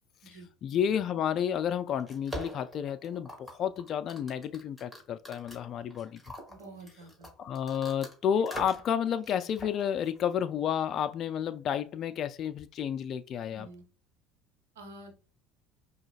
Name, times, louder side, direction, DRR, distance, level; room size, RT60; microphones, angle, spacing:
voice 1, 0.3-6.2 7.4-13.7, left 8 dB, 50° left, 0.3 m, -31 dB
sound 1, 2.0-8.1 8.5-8.9 9.2-10.2, right 1 dB, 5° right, 2.0 m, -44 dB
voice 2, 6.5-7.3 13.5-13.8 14.7-15.1, right 2 dB, 80° right, 1.0 m, -48 dB
5.0 x 2.8 x 2.4 m
hypercardioid pair, 70°, 0 cm